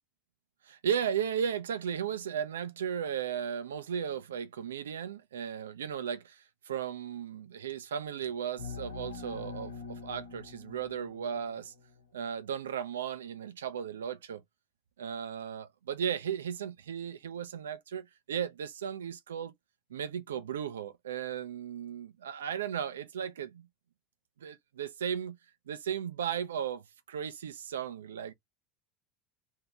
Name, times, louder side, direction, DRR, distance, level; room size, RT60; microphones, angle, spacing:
voice 1, 0.7-11.7 12.1-14.4 15.0-19.5 19.9-23.7 24.4-25.3 25.7-28.3, right 8 dB, 80° right, 0.6 m, -35 dB
sound 1, 8.6-12.1, left 5 dB, 80° left, 1.1 m, -44 dB
2.8 x 2.8 x 3.5 m
hypercardioid pair, 75°, 0 cm